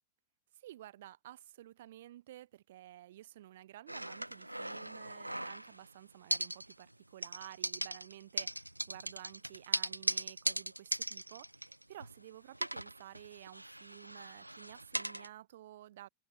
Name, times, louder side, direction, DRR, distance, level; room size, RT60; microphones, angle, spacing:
voice 1, 0.6-16.1, right 13 dB, 55° right, 2.2 m, -53 dB
sound 1, 3.9-5.9 6.3-6.9 7.2-12.2 12.5-15.3, right 1 dB, 85° right, 1.2 m, -39 dB
figure-of-eight pair, 90°, 0 cm